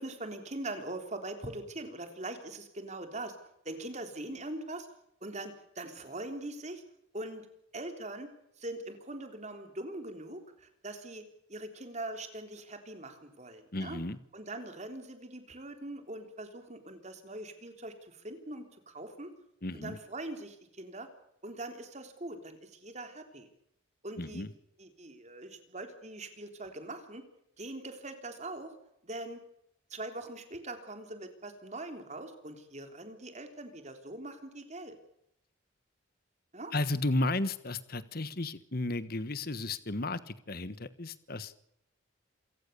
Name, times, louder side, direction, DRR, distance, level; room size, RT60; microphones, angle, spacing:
voice 1, 0.0-3.4 3.7-4.9 5.2-6.8 7.1-7.5 7.7-8.3 8.6-11.2 11.5-14.0 14.3-19.3 19.7-21.1 21.4-23.5 24.0-24.4 24.8-27.2 27.6-28.7 29.0-29.4 29.9-35.0 36.5-36.7, right 2 dB, 35° right, 6 dB, 3.5 m, -42 dB
voice 2, 13.7-14.2 19.6-20.0 24.2-24.5 36.7-41.5, left 2 dB, 45° left, 14 dB, 1.3 m, -33 dB
27.5 x 17.0 x 6.9 m, 0.75 s
head